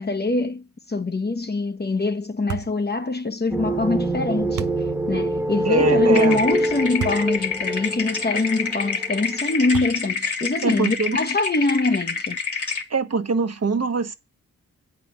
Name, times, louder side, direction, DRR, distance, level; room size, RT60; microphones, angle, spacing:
voice 1, 0.0-4.8 5.1-12.4, left 3 dB, 30° left, 1.0 m, -24 dB
sound 1, 2.5-2.8 4.6-4.8 7.0-7.3 7.9-8.0 9.7-10.2, right 11 dB, 65° right, 0.6 m, -31 dB
sound 2, 3.5-9.4, right 1 dB, 10° right, 1.2 m, -24 dB
voice 2, 5.6-6.4 10.6-11.2 12.9-14.1, right 4 dB, 50° right, 1.2 m, -23 dB
sound 3, 6.1-12.8, left 5 dB, 60° left, 2.4 m, -28 dB
8.6 x 5.0 x 7.3 m
cardioid pair, 45°, 33 cm